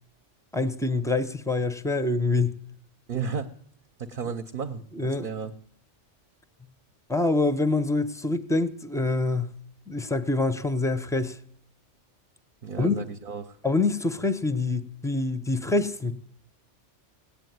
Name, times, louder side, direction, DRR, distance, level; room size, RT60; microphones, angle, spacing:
voice 1, 0.5-2.6 5.0-5.3 7.1-9.6 9.9-11.4 12.8-13.0 13.6-16.1, left 3 dB, 5° left, 14 dB, 0.4 m, -25 dB
voice 2, 3.1-3.5 4.0-5.5 12.6-13.6, right 5 dB, 50° right, 5 dB, 0.8 m, -33 dB
17.5 x 8.7 x 9.3 m, 0.66 s
omnidirectional pair, 1.2 m